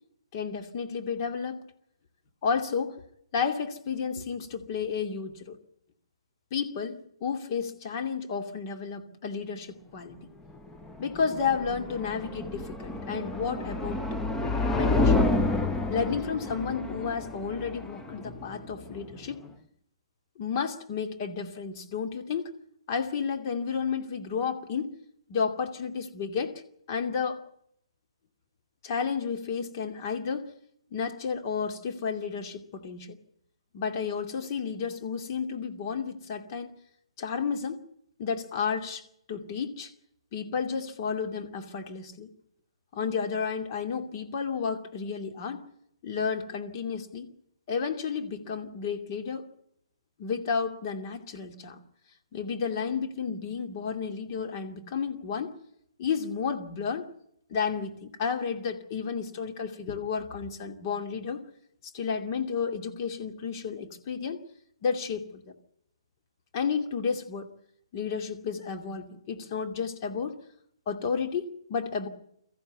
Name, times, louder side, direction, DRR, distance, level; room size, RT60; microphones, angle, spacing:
voice 1, 0.3-1.6 2.4-3.0 3.3-5.6 6.5-10.2 11.0-14.0 14.7-15.2 15.9-19.4 20.4-22.5 22.9-25.0 25.3-26.5 26.9-27.4 28.8-30.5 30.9-33.2 33.7-36.7 37.2-37.8 38.2-39.9 40.3-42.3 42.9-45.6 46.0-47.3 47.7-49.5 50.2-51.8 52.3-55.5 56.0-57.1 57.5-61.4 61.9-64.4 64.8-65.5 66.5-67.5 67.9-70.3 70.9-72.1, left 6 dB, 40° left, 4 dB, 2.6 m, -32 dB
sound 1, 10.5-19.5, left 2 dB, 10° left, 1.1 m, -29 dB
23.5 x 14.5 x 8.3 m, 0.75 s
figure-of-eight pair, 130°, 3 cm